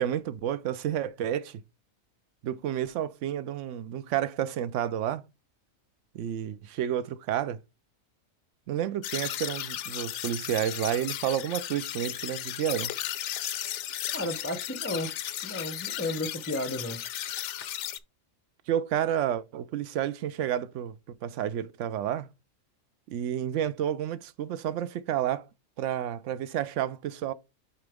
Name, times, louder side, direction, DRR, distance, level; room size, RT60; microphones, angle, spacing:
voice 1, 0.0-1.6 2.4-5.2 6.1-7.6 8.7-12.9 18.7-22.3 23.1-25.4 25.8-27.3, right 10 dB, 70° right, 0.9 m, -30 dB
sound 1, 9.0-18.0, left 12 dB, 70° left, 0.8 m, -35 dB
voice 2, 14.1-15.1 15.4-17.0, left 1 dB, 20° left, 0.4 m, -33 dB
8.9 x 3.8 x 3.5 m
omnidirectional pair, 1.4 m